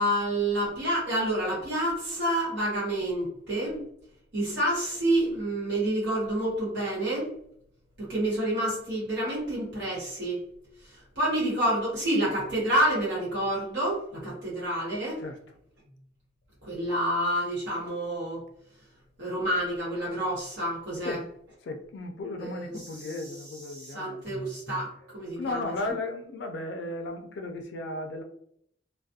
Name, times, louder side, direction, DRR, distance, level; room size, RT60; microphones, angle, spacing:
voice 1, 0.0-3.8 4.3-7.3 8.0-10.4 11.1-15.2 16.6-18.4 19.2-21.2 22.4-23.2 23.7-25.9, right 1 dB, 85° right, -7 dB, 1.1 m, -28 dB
voice 2, 21.6-24.4 25.4-28.2, left 2 dB, 80° left, 4 dB, 0.3 m, -35 dB
2.3 x 2.0 x 2.6 m, 0.69 s
head